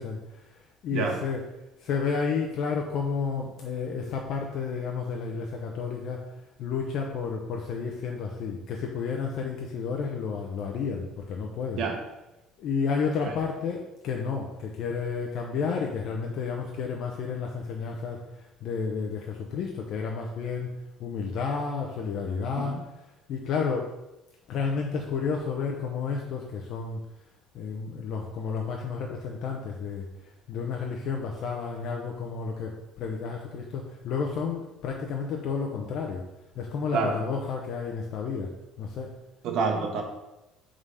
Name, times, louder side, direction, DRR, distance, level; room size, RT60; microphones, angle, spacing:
voice 1, 0.0-1.5 1.8-6.2 6.6-11.8 12.6-20.7 21.0-22.8 23.3-23.9 24.5-27.0 27.5-30.1 30.5-36.2 36.6-38.5 38.8-39.1, left 5 dB, 55° left, 1 dB, 0.7 m, -31 dB
voice 2, 39.4-40.0, right 4 dB, 65° right, 3 dB, 1.1 m, -27 dB
4.8 x 3.8 x 5.6 m, 0.98 s
cardioid pair, 130°, 0 cm